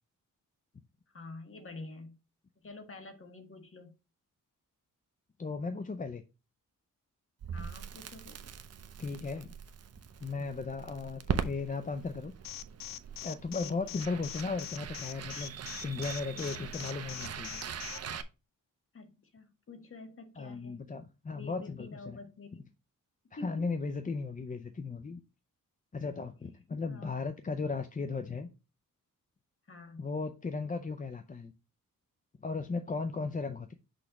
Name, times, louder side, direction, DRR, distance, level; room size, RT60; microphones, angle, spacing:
voice 1, 1.1-2.2 2.6-3.9 7.5-8.5 10.8-10.9 13.6-14.2 18.9-20.8 21.3-22.7 23.4-23.7 26.9-27.2 29.7-30.1, left 2 dB, 40° left, 1.6 m, -48 dB
voice 2, 5.4-6.2 9.0-9.5 10.2-12.3 13.2-17.6 20.4-22.2 23.3-25.2 25.9-28.5 30.0-31.5 32.4-33.7, left 4 dB, 25° left, 0.5 m, -36 dB
Crackle, 7.4-18.2, right 7 dB, 50° right, 0.7 m, -41 dB
Alarm, 12.4-18.0, left 13 dB, 80° left, 0.5 m, -42 dB
6.3 x 3.3 x 5.8 m
wide cardioid pair, 115°, 33 cm